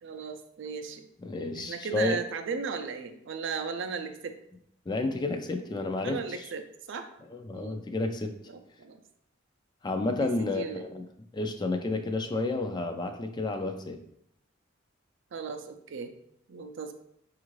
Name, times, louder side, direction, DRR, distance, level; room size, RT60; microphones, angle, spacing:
voice 1, 0.0-1.0 1.6-4.3 6.0-7.1 7.5-7.8 8.5-9.0 10.2-10.8 15.3-16.1 16.5-16.9, right 5 dB, 65° right, 7 dB, 0.4 m, -36 dB
voice 2, 1.2-2.2 4.9-6.2 7.3-8.3 9.8-11.1 11.3-14.0, left 2 dB, 20° left, 6 dB, 0.3 m, -31 dB
5.2 x 2.5 x 3.0 m, 0.73 s
head